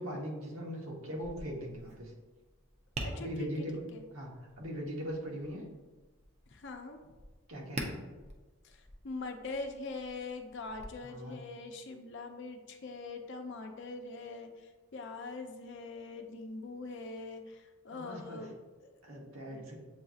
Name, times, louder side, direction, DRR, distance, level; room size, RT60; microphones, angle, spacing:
voice 1, 0.0-2.1 3.1-3.9 4.1-5.6 7.5-8.0 11.0-11.4 17.9-18.5 19.0-19.8, equal, 75° right, -2 dB, 1.1 m, -40 dB
Tap, 1.1-10.8, right 1 dB, 30° right, 0.5 m, -47 dB
voice 2, 3.0-3.5 3.9-4.0 6.5-7.1 8.6-14.5 14.9-18.9 19.5-19.6, left 3 dB, 55° left, 5 dB, 0.5 m, -43 dB
7.7 x 2.7 x 2.4 m, 1.2 s
head